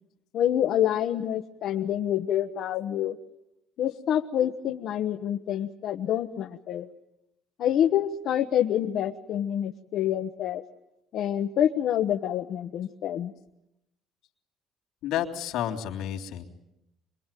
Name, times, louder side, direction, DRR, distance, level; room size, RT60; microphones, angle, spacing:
voice 1, 0.3-3.2 3.8-6.9 7.6-10.6 11.1-13.3, left 10 dB, 55° left, 4 dB, 1.1 m, -27 dB
voice 2, 15.0-16.4, left 10 dB, 75° left, 3 dB, 3.4 m, -30 dB
26.0 x 22.5 x 9.3 m, 0.86 s
cardioid pair, 165°, 0 cm